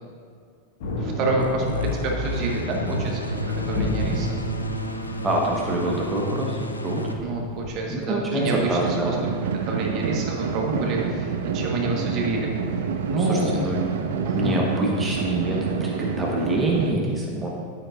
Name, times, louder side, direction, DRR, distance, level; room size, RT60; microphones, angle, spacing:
Thunder, 0.8-7.8, equal, 55° left, 1.7 m, -31 dB
voice 1, 1.0-3.2 3.7-4.4 7.2-9.4 9.7-12.5 13.0-13.7 14.2-14.6, right 2 dB, 40° right, 0 dB, 1.4 m, -28 dB
sound 1, 1.4-7.2, left 1 dB, 85° left, 0.6 m, -31 dB
voice 2, 5.2-6.6 6.8-7.1 7.9-9.2 13.2-13.8 14.3-17.5, right 1 dB, 15° right, -2 dB, 1.3 m, -26 dB
sound 2, 8.4-16.9, right 6 dB, 60° right, 0.6 m, -28 dB
10.0 x 9.5 x 2.6 m, 2.3 s
figure-of-eight pair, 90°, 0 cm